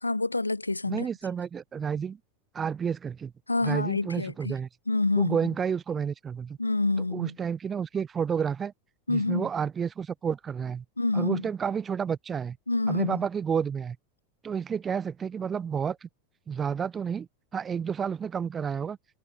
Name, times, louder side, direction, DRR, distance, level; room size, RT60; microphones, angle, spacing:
voice 1, 0.0-1.1 3.5-4.5 4.9-5.4 6.6-7.3 9.1-9.5 11.0-11.4 12.7-13.2, left 2 dB, 90° left, 1.4 m, -27 dB
voice 2, 0.8-2.2 2.5-3.3 3.6-4.7 5.2-6.6 7.1-8.7 9.1-10.8 11.1-12.6 12.9-14.0 14.4-16.1 16.5-19.0, right 7 dB, 25° right, 0.6 m, -30 dB
figure-of-eight pair, 85°, 0 cm